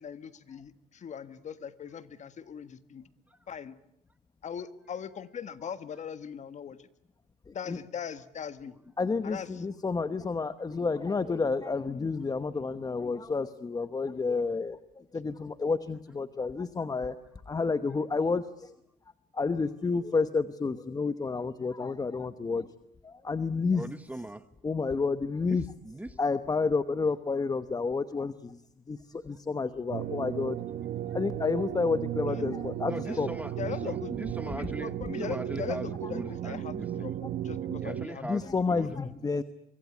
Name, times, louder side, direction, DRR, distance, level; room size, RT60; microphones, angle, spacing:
voice 1, 0.0-3.1 3.5-3.8 4.4-6.9 7.5-8.8 9.2-9.6 32.2-32.5 33.0-33.2 33.6-34.1 34.4-37.1 37.4-38.5 38.8-39.0, left 7 dB, 45° left, 12 dB, 1.6 m, -40 dB
voice 2, 7.5-7.8 9.0-17.1 17.5-18.7 19.3-22.7 23.0-23.8 24.6-25.6 26.2-28.6 28.9-30.6 31.1-33.3 37.7-37.8 38.2-39.4, left 4 dB, 20° left, 12 dB, 1.0 m, -30 dB
voice 3, 23.7-24.5 25.4-26.2 32.9-37.2 37.8-39.0, right 1 dB, 10° right, 13 dB, 1.0 m, -40 dB
sound 1, 29.9-38.1, right 11 dB, 60° right, 1.2 m, -35 dB
24.5 x 24.0 x 8.4 m, 0.76 s
cardioid pair, 110°, 17 cm